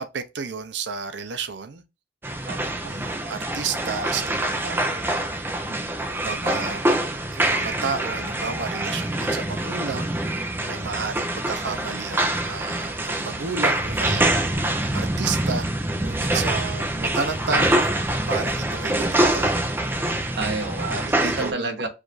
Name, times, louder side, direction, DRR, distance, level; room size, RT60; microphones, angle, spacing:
voice 1, 0.0-1.8 2.8-5.1 6.1-6.8 7.3-10.3 10.6-19.6 20.8-21.7, right 5 dB, 85° right, 0.6 m, -32 dB
sound 1, 2.2-21.5, right 1 dB, 15° right, 0.5 m, -25 dB
voice 2, 2.4-2.8 5.7-6.0 6.4-7.2 16.3-16.7 20.4-21.9, right 3 dB, 70° right, 1.1 m, -32 dB
4.9 x 2.5 x 3.9 m
head